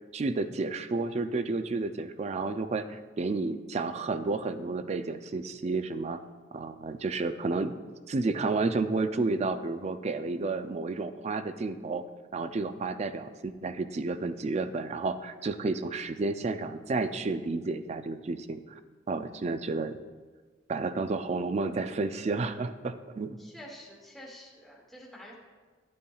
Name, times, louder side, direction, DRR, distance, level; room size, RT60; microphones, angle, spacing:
voice 1, 0.1-6.2 6.5-7.8 8.1-12.0 12.3-18.8 19.1-20.0 20.7-23.4, right 3 dB, 35° right, 10 dB, 0.3 m, -31 dB
voice 2, 19.3-19.7 23.4-25.4, equal, ahead, -4 dB, 1.1 m, -48 dB
11.5 x 8.4 x 2.3 m, 1.4 s
head